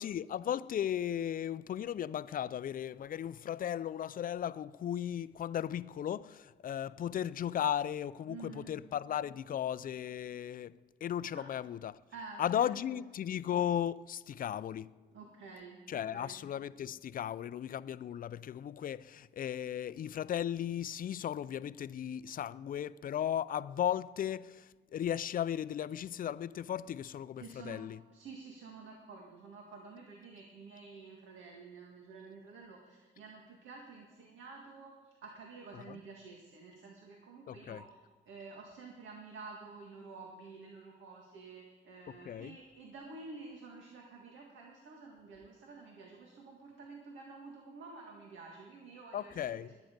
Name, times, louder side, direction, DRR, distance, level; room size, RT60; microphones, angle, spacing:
voice 1, 0.0-12.0 12.4-14.9 15.9-28.0 35.7-36.0 37.5-37.8 42.3-42.6 49.1-49.7, left 10 dB, 45° left, 0.4 m, -36 dB
voice 2, 8.3-8.7 11.3-11.5 12.1-13.0 15.1-16.4 27.4-27.9 28.1-38.0 38.3-49.8, right 4 dB, 75° right, 2.0 m, -50 dB
21.0 x 9.3 x 5.2 m
cardioid pair, 90°, 20 cm